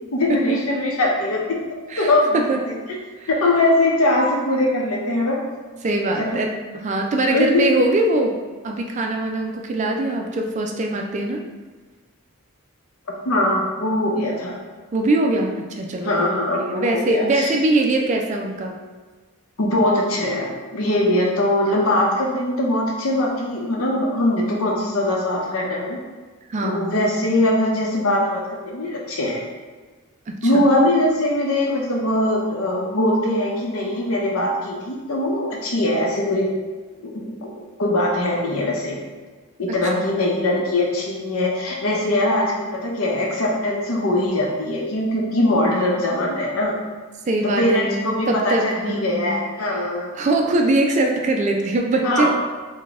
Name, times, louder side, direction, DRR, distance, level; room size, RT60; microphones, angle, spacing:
voice 1, 0.1-1.6 2.0-2.7 3.3-5.4 6.2-6.4 7.2-7.6 13.2-14.6 16.0-17.5 19.6-26.0 26.6-29.4 30.4-36.5 37.1-39.0 39.6-46.7 47.4-50.1 52.0-52.3, left 1 dB, 75° left, -2 dB, 0.8 m, -21 dB
voice 2, 1.9-2.6 3.2-3.3 5.8-8.4 8.6-11.4 14.9-18.8 26.5-27.0 30.3-30.6 39.7-39.8 47.3-49.3 49.7-49.8 50.2-52.3, right 2 dB, 35° right, 2 dB, 0.3 m, -22 dB
3.9 x 2.2 x 3.5 m, 1.4 s
head